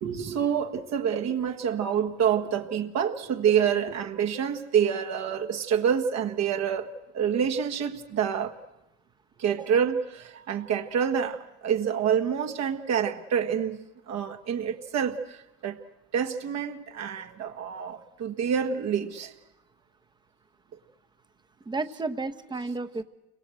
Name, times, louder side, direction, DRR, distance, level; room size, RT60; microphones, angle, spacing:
voice 1, 0.0-8.5 9.4-13.8 14.1-15.8 16.1-19.3, right 8 dB, 55° right, 1.6 m, -27 dB
voice 2, 21.6-23.0, right 3 dB, 15° right, 1.0 m, -32 dB
30.0 x 23.0 x 7.8 m
cardioid pair, 155°, 31 cm